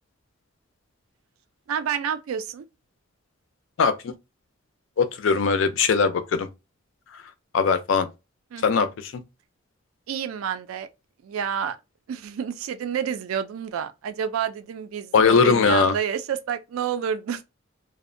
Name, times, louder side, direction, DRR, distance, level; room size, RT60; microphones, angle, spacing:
voice 1, 1.7-2.6 8.5-8.7 10.1-10.9 11.2-11.8 12.1-17.4, right 8 dB, 85° right, 0.3 m, -29 dB
voice 2, 3.8-4.1 5.0-6.5 7.5-8.1 8.6-9.1 15.1-16.0, left 5 dB, 70° left, 0.4 m, -20 dB
2.6 x 2.0 x 2.5 m
head